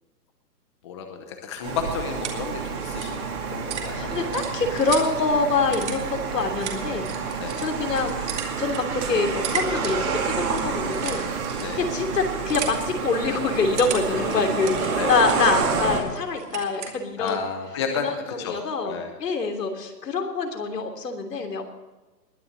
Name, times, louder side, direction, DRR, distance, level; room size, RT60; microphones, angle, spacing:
voice 1, 0.8-3.2 3.5-4.4 7.4-7.6 11.6-11.8 14.1-15.1 17.2-19.1, left 6 dB, 15° left, 4 dB, 0.8 m, -32 dB
sound 1, 1.6-17.5, right 7 dB, 45° right, 2.5 m, -38 dB
sound 2, 1.6-16.0, right 5 dB, 60° right, 3.7 m, -29 dB
voice 2, 3.9-7.1 7.6-8.3 8.6-11.2 11.7-17.4 17.9-18.9 19.2-21.6, left 4 dB, 75° left, 4 dB, 3.3 m, -25 dB
20.5 x 7.0 x 6.7 m, 1.2 s
hypercardioid pair, 160°, 49 cm